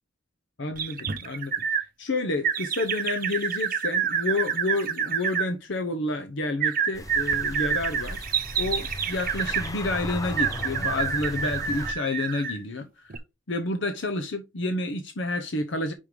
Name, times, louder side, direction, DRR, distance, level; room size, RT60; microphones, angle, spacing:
voice 1, 0.6-8.3 8.6-13.2 13.5-15.9, left 2 dB, 65° left, 0.9 m, -30 dB
sound 1, 0.8-1.8 2.4-5.5 6.6-9.7 10.4-12.6 13.1-13.2, right 7 dB, 45° right, 0.8 m, -28 dB
sound 2, 6.9-11.9, left 1 dB, 15° left, 0.8 m, -36 dB
5.5 x 4.8 x 5.0 m
head